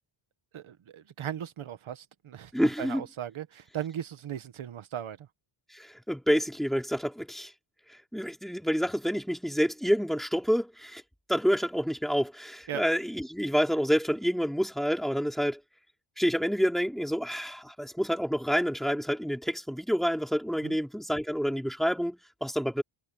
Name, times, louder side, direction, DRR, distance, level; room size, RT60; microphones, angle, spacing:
voice 1, 0.5-2.5 2.8-5.3 12.7-12.8 20.6-20.8, right 10 dB, 70° right, 1.6 m, -37 dB
voice 2, 2.5-3.0 5.7-7.5 8.1-11.0 11.3-15.6 16.2-22.8, equal, ahead, 4.5 m, -28 dB
wide cardioid pair, 150°, 50 cm